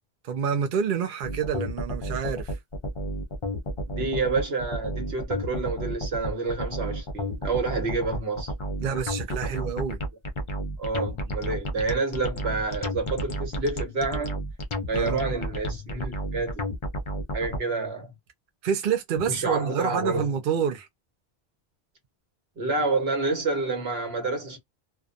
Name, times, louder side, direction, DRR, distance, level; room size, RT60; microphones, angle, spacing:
voice 1, 0.2-2.6 8.8-10.0 14.9-15.2 18.6-20.9, right 7 dB, 60° right, 0.7 m, -28 dB
sound 1, 1.2-17.6, equal, 40° left, 0.5 m, -31 dB
voice 2, 3.9-8.5 9.4-9.5 10.8-14.4 14.9-16.6 17.3-18.1 19.2-20.3 22.6-24.6, right 3 dB, 80° right, 1.3 m, -28 dB
2.4 x 2.3 x 2.5 m
omnidirectional pair, 1.0 m